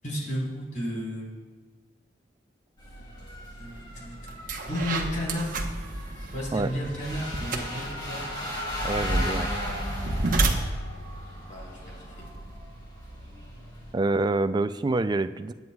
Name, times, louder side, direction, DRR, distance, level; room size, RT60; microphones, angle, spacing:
voice 1, 0.0-1.3 3.6-4.4 4.7-5.5 6.3-8.2 11.5-12.2, equal, 45° left, -4 dB, 4.1 m, -33 dB
sound 1, 2.8-13.9, left 1 dB, 25° left, 3.3 m, -37 dB
sound 2, 3.8-3.9 4.3-12.6, right 2 dB, 50° right, 1.1 m, -31 dB
voice 2, 8.8-9.5 13.9-15.5, right 2 dB, 25° right, 10 dB, 0.4 m, -26 dB
21.5 x 9.5 x 2.4 m, 1.4 s
head